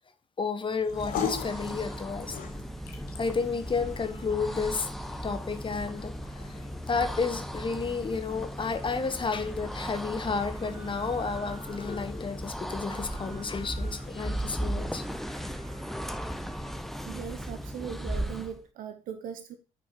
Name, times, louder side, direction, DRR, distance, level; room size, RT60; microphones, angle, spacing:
voice 1, 0.4-2.4 3.2-4.9 5.2-6.1 6.9-15.0, left 4 dB, 30° left, 1.3 m, -31 dB
sound 1, 0.7-17.2, left 7 dB, 60° left, 1.6 m, -44 dB
sound 2, 0.8-18.6, equal, ahead, 0.9 m, -37 dB
sound 3, 10.4-12.1 12.8-14.1 14.5-16.8, right 1 dB, 35° right, 2.2 m, -52 dB
voice 2, 17.0-19.6, right 8 dB, 55° right, 0.9 m, -39 dB
9.6 x 6.7 x 3.2 m
figure-of-eight pair, 40°, 17 cm